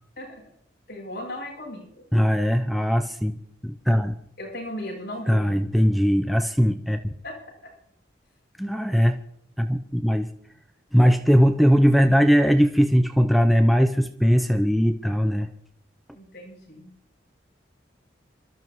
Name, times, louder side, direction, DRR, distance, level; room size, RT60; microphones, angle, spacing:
voice 1, 0.9-2.0 4.4-5.6 7.2-7.3 7.6-7.7 16.1-16.9, left 1 dB, 55° left, -3 dB, 7.7 m, -37 dB
voice 2, 2.1-3.3 3.6-4.2 5.3-7.1 8.6-9.2 9.6-10.3 10.9-15.5, equal, ahead, 6 dB, 0.5 m, -20 dB
27.0 x 13.0 x 3.1 m, 0.69 s
head